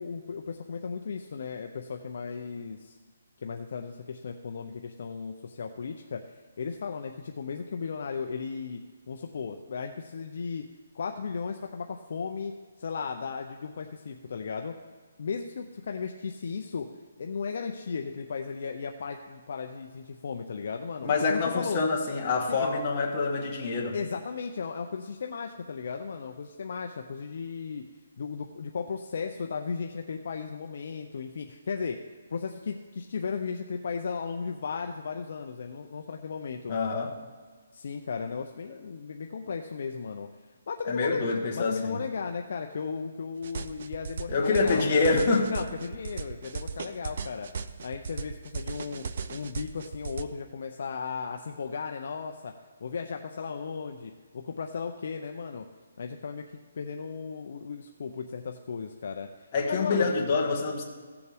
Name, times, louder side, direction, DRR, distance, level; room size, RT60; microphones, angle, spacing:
voice 1, 0.0-3.0 3.4-6.2 6.6-10.7 10.9-12.5 12.8-14.7 15.2-16.9 17.2-21.8 22.5-22.7 23.9-27.8 28.2-32.0 32.3-36.8 37.7-40.3 40.7-45.0 45.5-47.5 47.8-52.5 52.8-55.6 56.0-56.4 56.7-60.1, left 5 dB, 50° left, 4 dB, 0.5 m, -35 dB
voice 2, 21.0-23.9 36.7-37.1 40.9-42.0 44.3-45.5 59.5-60.8, left 4 dB, 25° left, -1 dB, 1.2 m, -26 dB
sound 1, 43.4-50.2, right 5 dB, 40° right, 0.4 m, -37 dB
16.0 x 6.9 x 3.4 m, 1.5 s
hypercardioid pair, 175°, 0 cm